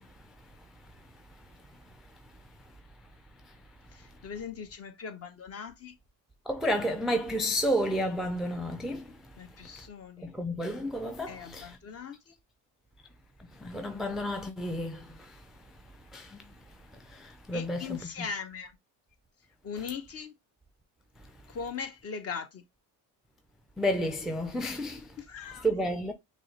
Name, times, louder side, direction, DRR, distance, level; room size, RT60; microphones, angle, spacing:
voice 1, 3.9-5.9 9.4-10.3 11.3-12.4 17.5-18.7 19.6-20.3 21.5-22.6 25.2-25.7, left 6 dB, 35° left, 0.8 m, -40 dB
voice 2, 6.5-9.1 10.4-11.7 13.6-15.0 16.1-16.4 17.5-18.0 23.8-25.0 25.6-26.1, equal, ahead, 0.4 m, -30 dB
6.1 x 2.1 x 2.8 m
supercardioid pair, 80°, 43 cm